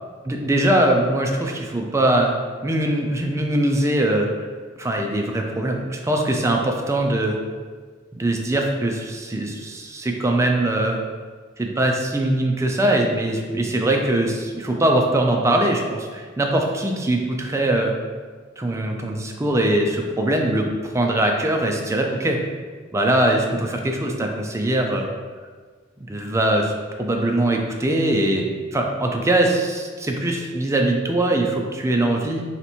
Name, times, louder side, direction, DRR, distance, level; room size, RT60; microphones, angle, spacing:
voice 1, 0.2-2.3 2.6-4.5 4.8-7.4 8.2-11.0 11.6-17.9 18.6-20.7 20.9-22.4 22.9-25.1 26.0-26.7 27.0-32.4, right 1 dB, 15° right, 2 dB, 0.4 m, -21 dB
3.3 x 2.9 x 4.2 m, 1.5 s
head